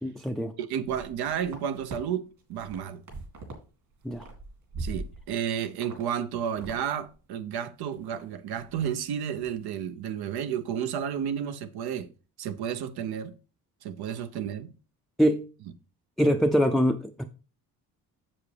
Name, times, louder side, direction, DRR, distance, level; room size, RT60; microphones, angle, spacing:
voice 1, 0.0-0.5 4.0-4.2 15.2-15.5 16.2-17.2, equal, ahead, 0.4 m, -24 dB
voice 2, 0.6-3.0 4.8-12.1 12.4-13.3 13.8-14.7, right 8 dB, 90° right, 0.8 m, -32 dB
sound 1, 0.8-2.0 2.4-3.6 3.9-5.4 5.8-6.0 6.3-6.8 7.1-7.2 7.6-8.2 8.6-8.9 9.2-9.5, right 2 dB, 60° right, 2.9 m, -41 dB
7.3 x 7.1 x 3.3 m
cardioid pair, 130°, 37 cm